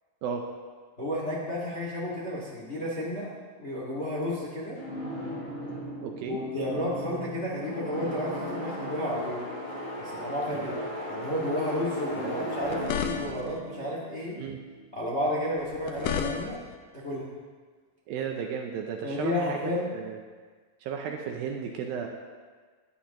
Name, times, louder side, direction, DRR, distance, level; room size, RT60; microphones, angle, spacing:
voice 1, 1.0-3.3 3.6-4.8 6.3-9.4 10.0-14.4 14.9-16.6 16.9-17.2 19.0-19.9, left 1 dB, 30° left, -5 dB, 1.1 m, -32 dB
sound 1, 4.8-14.7, equal, 45° left, 3.9 m, -37 dB
voice 2, 6.0-6.4 10.5-10.7 12.1-12.5 14.3-14.6 18.1-19.6 19.9-20.2 20.8-22.1, right 7 dB, 75° right, 3 dB, 2.3 m, -34 dB
sound 2, 12.6-13.6 15.6-16.8, left 8 dB, 80° left, 2.1 m, -32 dB
14.0 x 10.5 x 3.0 m, 1.5 s
omnidirectional pair, 4.6 m